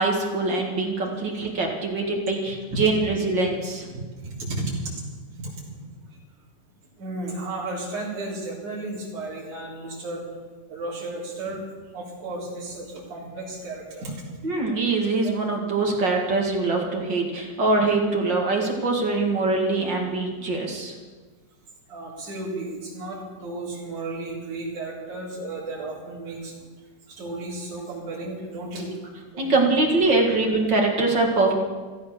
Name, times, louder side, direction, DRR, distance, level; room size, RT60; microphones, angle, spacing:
voice 1, 0.0-3.9 14.4-20.9 29.4-31.5, right 3 dB, 40° right, 1 dB, 2.3 m, -23 dB
voice 2, 2.7-3.1 4.2-4.8 5.4-5.6 7.0-10.2 10.7-11.6 11.9-14.1 15.2-15.3 21.9-26.5 27.1-28.9 29.3-29.5 30.6-30.7, right 2 dB, 70° right, -7 dB, 5.5 m, -33 dB
15.0 x 13.5 x 6.8 m, 1.4 s
omnidirectional pair, 3.7 m